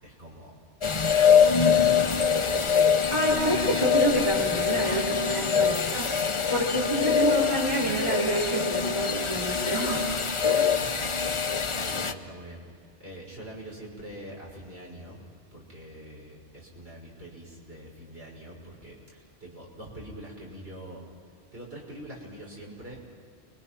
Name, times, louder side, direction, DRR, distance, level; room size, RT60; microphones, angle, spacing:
voice 1, 0.0-0.5 0.9-2.8 3.8-4.1 5.5-6.0 10.6-15.2 15.5-21.0 21.5-23.0, equal, 65° right, -3 dB, 6.3 m, -44 dB
sound 1, 0.8-12.1, left 6 dB, 30° left, 0.7 m, -24 dB
voice 2, 3.1-6.1 6.5-10.1 10.4-10.7, right 1 dB, 30° right, -4 dB, 3.0 m, -28 dB
29.5 x 23.0 x 6.0 m, 2.3 s
omnidirectional pair, 1.1 m